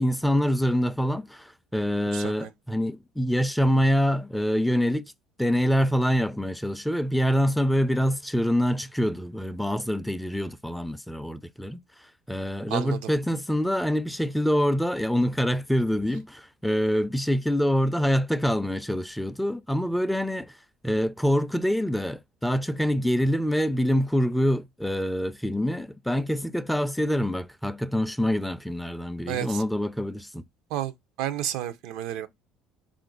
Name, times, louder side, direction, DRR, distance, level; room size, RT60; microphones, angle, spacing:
voice 1, 0.0-5.1 5.4-11.8 12.3-20.5 20.8-30.4, equal, 5° left, 0.4 m, -25 dB
voice 2, 2.1-2.5 12.7-13.0 29.3-29.6 30.7-30.9 31.2-32.3, right 11 dB, 70° right, 0.6 m, -31 dB
4.1 x 2.5 x 3.8 m
hypercardioid pair, 75°, 0 cm